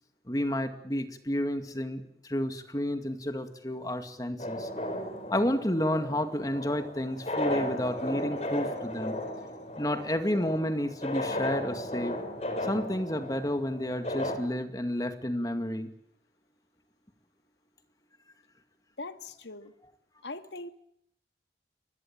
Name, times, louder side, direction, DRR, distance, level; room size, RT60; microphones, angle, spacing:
voice 1, 0.3-4.7 5.3-9.2 9.8-12.2 12.6-15.9, left 1 dB, 20° left, 8 dB, 2.2 m, -31 dB
sound 1, 4.4-14.4, left 1 dB, 35° left, 4.2 m, -35 dB
voice 2, 19.0-19.7 20.2-20.7, left 2 dB, 85° left, 9 dB, 1.9 m, -41 dB
24.0 x 21.0 x 8.9 m, 0.71 s
head